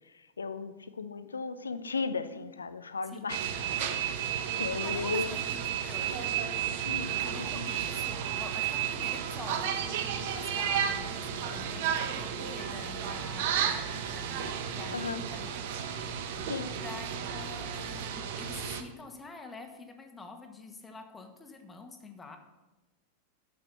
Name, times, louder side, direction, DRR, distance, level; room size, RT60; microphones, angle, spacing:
voice 1, 0.1-3.4 3.8-4.2 4.6-5.4 6.8-7.1 7.5-7.7 14.9-15.2 16.5-16.7, left 4 dB, 75° left, 12 dB, 0.6 m, -35 dB
sound 1, 3.3-18.8, right 8 dB, 50° right, 0.9 m, -33 dB
voice 2, 4.8-6.4 7.2-15.5 15.9-16.4 16.7-22.4, left 3 dB, 15° left, 5 dB, 1.4 m, -47 dB
9.2 x 6.8 x 5.7 m, 1.1 s
figure-of-eight pair, 90°, 0 cm